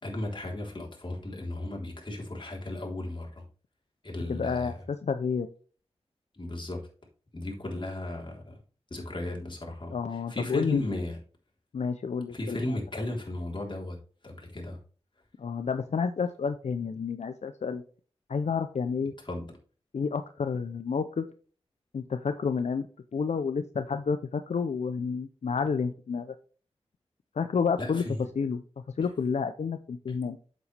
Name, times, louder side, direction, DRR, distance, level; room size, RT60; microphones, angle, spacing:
voice 1, 0.0-3.4 4.0-4.7 6.4-6.8 7.3-8.6 8.9-11.2 12.3-14.0 14.2-14.8 19.3-19.4 27.8-28.2, left 1 dB, 45° left, -1 dB, 3.6 m, -35 dB
voice 2, 4.3-5.5 9.9-10.8 11.7-12.8 15.4-17.8 18.3-19.1 19.9-21.3 21.9-22.9 23.1-26.3 27.4-28.0 28.4-28.6 29.0-30.4, left 5 dB, 90° left, 9 dB, 0.6 m, -30 dB
8.0 x 7.6 x 3.3 m, 0.39 s
cardioid pair, 45°, 11 cm